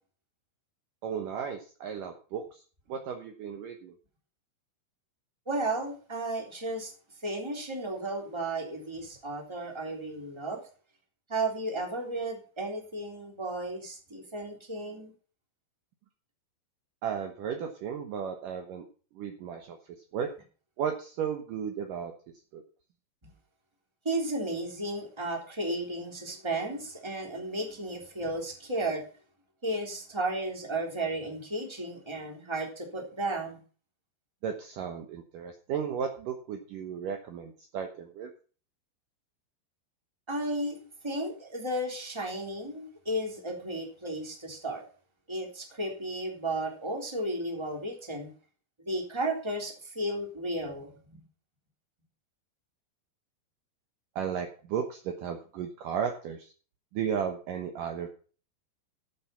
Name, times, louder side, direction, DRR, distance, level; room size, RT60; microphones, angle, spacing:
voice 1, 1.0-2.6 2.9-3.9 17.0-18.9 19.2-19.8 20.1-20.3 20.8-22.1 22.5-22.6 34.4-38.3 54.2-56.5 56.9-58.1, right 7 dB, 80° right, 4 dB, 1.9 m, -34 dB
voice 2, 5.5-6.9 7.2-10.6 11.3-15.1 24.0-29.0 29.6-33.6 40.3-44.8 45.3-48.3 48.8-51.2, right 1 dB, 5° right, 0 dB, 2.5 m, -34 dB
13.0 x 7.6 x 5.7 m, 0.39 s
omnidirectional pair, 5.7 m